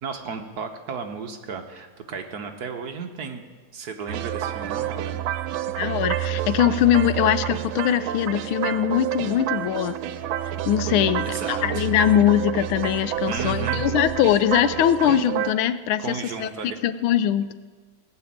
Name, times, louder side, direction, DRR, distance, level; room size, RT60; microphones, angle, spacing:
voice 1, 0.0-3.4 3.7-5.2 11.2-11.9 13.3-13.8 16.0-16.8, right 5 dB, 55° right, 5 dB, 1.3 m, -34 dB
sound 1, 4.1-15.5, right 12 dB, 85° right, 1.5 m, -28 dB
voice 2, 5.8-9.9 10.7-16.5 16.8-17.5, left 10 dB, 90° left, 13 dB, 1.5 m, -22 dB
18.5 x 6.9 x 8.6 m, 1.4 s
omnidirectional pair, 2.2 m